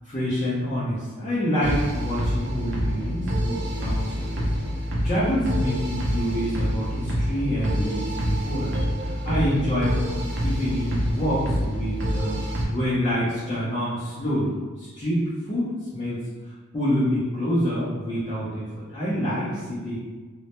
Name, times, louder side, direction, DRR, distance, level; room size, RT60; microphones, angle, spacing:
voice 1, 0.0-4.5 5.0-8.7 9.0-14.5 14.8-20.0, equal, 25° left, -11 dB, 0.5 m, -27 dB
sound 1, 1.6-12.6, equal, 55° right, 0.5 m, -27 dB
2.1 x 2.1 x 2.8 m, 1.4 s
head